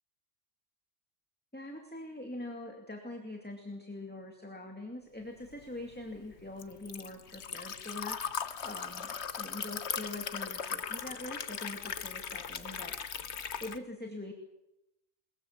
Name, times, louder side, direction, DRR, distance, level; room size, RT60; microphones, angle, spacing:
voice 1, 1.5-8.2 8.6-12.9 13.6-14.3, left 2 dB, 10° left, 2 dB, 2.4 m, -43 dB
Liquid, 5.5-13.8, left 7 dB, 75° left, 1.3 m, -38 dB
21.5 x 21.0 x 7.4 m, 0.88 s
omnidirectional pair, 1.2 m